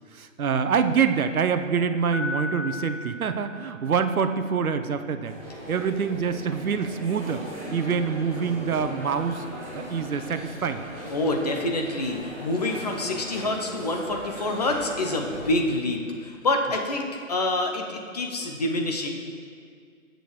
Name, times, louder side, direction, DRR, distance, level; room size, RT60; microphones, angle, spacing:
voice 1, 0.1-5.4 5.7-7.4 7.7-9.4 9.7-10.8, right 6 dB, 90° right, 10 dB, 0.8 m, -25 dB
Piano, 2.1-4.2, left 3 dB, 20° right, 0.7 m, -35 dB
sound 1, 5.2-15.5, equal, 5° left, 1.8 m, -39 dB
voice 2, 11.1-19.1, left 2 dB, 30° left, 2 dB, 0.7 m, -27 dB
13.5 x 7.8 x 3.2 m, 2.2 s
hypercardioid pair, 165°, 42 cm